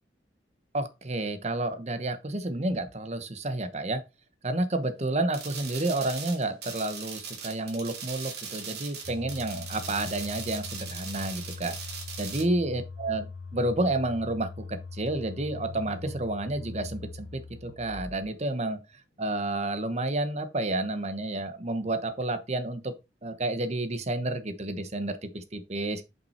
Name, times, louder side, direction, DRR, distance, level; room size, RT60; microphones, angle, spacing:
voice 1, 0.7-4.0 4.4-11.8 12.2-13.3 13.5-14.6 14.9-18.8 19.2-22.9 23.2-26.0, right 2 dB, 40° right, 1.1 m, -30 dB
sound 1, 5.3-12.4, right 6 dB, 65° right, 2.4 m, -40 dB
sound 2, 9.0-18.3, left 4 dB, 85° left, 1.5 m, -41 dB
6.4 x 5.6 x 4.4 m
head